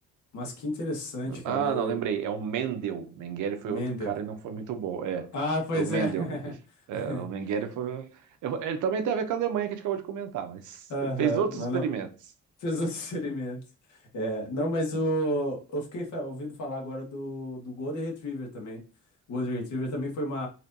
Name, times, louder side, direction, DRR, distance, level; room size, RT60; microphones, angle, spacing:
voice 1, 0.3-2.0 3.7-4.1 5.3-6.5 6.9-7.3 10.9-11.8 12.6-13.6 13.9-18.8 19.3-20.5, equal, 70° left, 1.8 m, -31 dB
voice 2, 1.3-5.3 5.7-6.3 6.9-10.9 11.2-12.1 14.9-15.0, right 7 dB, 80° right, 0.8 m, -31 dB
4.2 x 3.4 x 2.7 m
cardioid pair, 90°, 30 cm